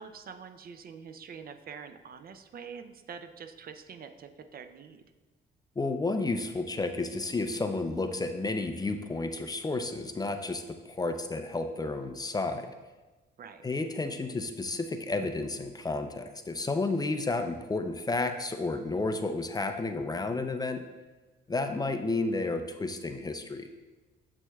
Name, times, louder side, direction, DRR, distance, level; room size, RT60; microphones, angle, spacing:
voice 1, 0.0-5.0 13.4-13.7, right 6 dB, 50° right, 8 dB, 0.5 m, -45 dB
voice 2, 5.8-12.7 13.6-20.8 21.5-23.7, left 3 dB, 20° left, 7 dB, 0.5 m, -31 dB
7.6 x 6.1 x 2.3 m, 1.2 s
cardioid pair, 90°, 20 cm